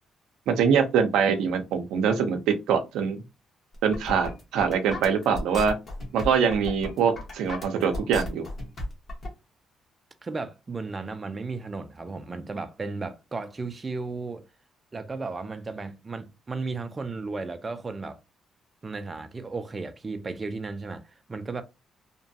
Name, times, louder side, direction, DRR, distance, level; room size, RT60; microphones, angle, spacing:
voice 1, 0.5-3.2 3.8-5.8 6.1-8.5, right 6 dB, 90° right, 0.5 m, -24 dB
sound 1, 3.7-9.3, left 1 dB, 45° left, 1.3 m, -35 dB
voice 2, 10.2-14.4 14.9-18.2 18.8-21.6, right 3 dB, 30° right, 0.4 m, -34 dB
2.9 x 2.2 x 2.6 m
cardioid pair, 90°, 0 cm